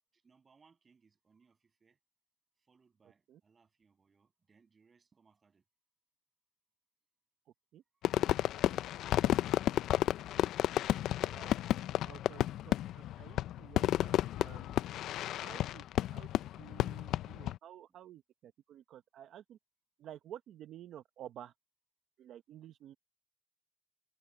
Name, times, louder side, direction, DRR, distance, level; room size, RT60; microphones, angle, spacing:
voice 1, 0.0-2.0 2.6-5.6 7.9-8.1 12.2-12.4, right 5 dB, 35° right, 6.8 m, -70 dB
voice 2, 7.5-7.8 8.4-8.5 11.3-11.5 12.0-14.7 15.4-16.3 16.6-19.6 20.0-21.5 22.2-23.0, right 11 dB, 75° right, 0.8 m, -52 dB
Fireworks, 8.0-17.6, left 13 dB, 85° left, 0.4 m, -32 dB
cardioid pair, 90°, 0 cm